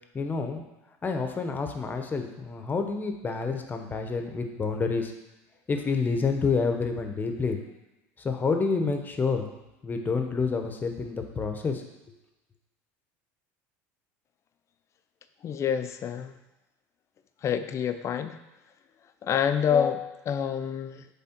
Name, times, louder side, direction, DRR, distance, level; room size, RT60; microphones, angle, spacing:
voice 1, 0.1-0.6 1.0-5.1 5.7-7.6 8.2-9.5 9.8-11.8, left 4 dB, 25° left, 5 dB, 0.9 m, -28 dB
voice 2, 15.4-16.4 17.4-18.4 19.2-21.1, left 8 dB, 40° left, 9 dB, 0.5 m, -27 dB
7.6 x 3.6 x 4.5 m, 1.0 s
supercardioid pair, 100°, 8 cm